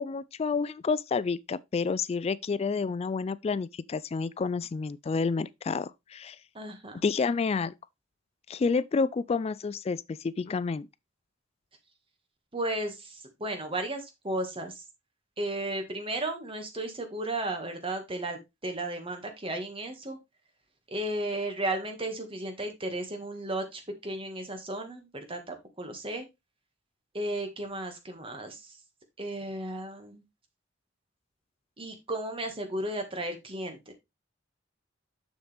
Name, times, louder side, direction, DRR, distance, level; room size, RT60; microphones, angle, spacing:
voice 1, 0.0-6.4 7.0-7.7 8.5-10.9, left 4 dB, 30° left, 0.3 m, -29 dB
voice 2, 6.5-7.0 12.5-14.8 15.4-20.2 20.9-26.3 27.1-28.8 29.2-30.2 31.8-33.9, right 1 dB, 30° right, 1.7 m, -34 dB
7.2 x 6.5 x 3.3 m
head